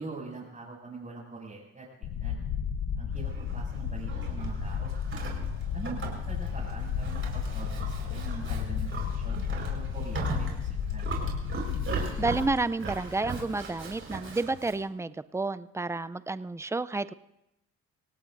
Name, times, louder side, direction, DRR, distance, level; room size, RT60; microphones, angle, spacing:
voice 1, 0.0-2.4 3.0-4.9 5.7-11.1, right 3 dB, 25° right, -7 dB, 6.6 m, -43 dB
sound 1, 2.0-12.5, left 8 dB, 80° left, 1.0 m, -33 dB
Livestock farm animals working animals, 3.1-14.8, right 4 dB, 45° right, 4.7 m, -38 dB
voice 2, 12.2-17.1, right 3 dB, 10° right, 14 dB, 0.5 m, -30 dB
27.0 x 17.5 x 2.6 m, 0.91 s
cardioid pair, 90°, 30 cm